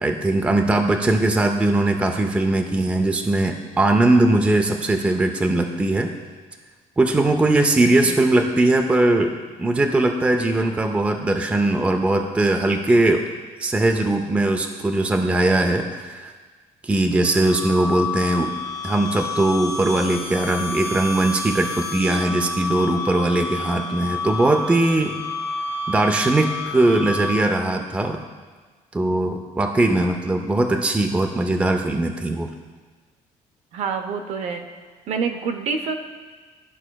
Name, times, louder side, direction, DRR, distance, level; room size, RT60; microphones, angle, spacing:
voice 1, 0.0-6.1 7.0-13.2 13.6-16.3 16.8-18.5 18.8-25.2 25.9-28.2 28.9-32.5, right 2 dB, 10° right, 3 dB, 0.4 m, -20 dB
sound 1, 17.2-27.6, left 3 dB, 30° left, 1.1 m, -30 dB
voice 2, 33.7-34.7 35.1-36.0, right 5 dB, 60° right, 6 dB, 0.6 m, -27 dB
13.0 x 4.9 x 2.3 m, 1.4 s
cardioid pair, 160°, 13 cm